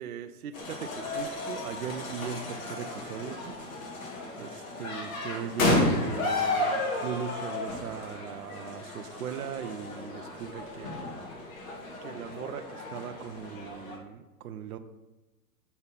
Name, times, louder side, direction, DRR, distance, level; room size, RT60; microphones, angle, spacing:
voice 1, 0.0-3.5 4.4-11.1 12.0-14.8, right 8 dB, 60° right, 9 dB, 0.7 m, -39 dB
sound 1, 0.5-14.0, left 2 dB, 55° left, 2.0 m, -33 dB
6.9 x 4.4 x 5.5 m, 1.1 s
hypercardioid pair, 160°, 49 cm